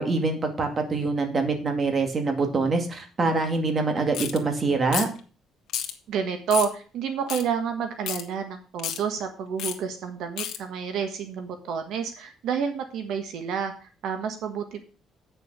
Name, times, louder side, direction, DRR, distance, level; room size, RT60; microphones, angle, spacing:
voice 1, 0.0-5.1, right 3 dB, 30° right, 5 dB, 2.2 m, -25 dB
sound 1, 4.1-4.4 4.9-5.2 5.7-5.9 6.5-6.7 7.3-7.4 8.1-8.2 8.8-9.0 9.6-9.8 10.4-10.6, left 10 dB, 65° left, 1.7 m, -30 dB
voice 2, 6.1-14.8, right 7 dB, 70° right, 7 dB, 1.4 m, -29 dB
8.7 x 6.6 x 6.6 m, 0.37 s
cardioid pair, 145°, 0 cm